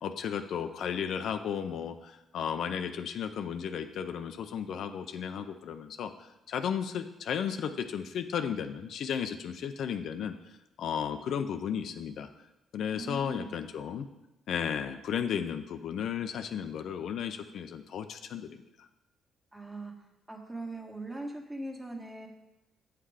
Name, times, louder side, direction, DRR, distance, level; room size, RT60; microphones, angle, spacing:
voice 1, 0.0-10.4 10.8-12.3 12.7-14.1 14.5-18.6, left 8 dB, 70° left, 8 dB, 0.5 m, -34 dB
voice 2, 12.9-13.7 19.5-22.3, right 2 dB, 15° right, 1 dB, 1.6 m, -41 dB
8.5 x 5.8 x 4.9 m, 0.93 s
cardioid pair, 90°, 0 cm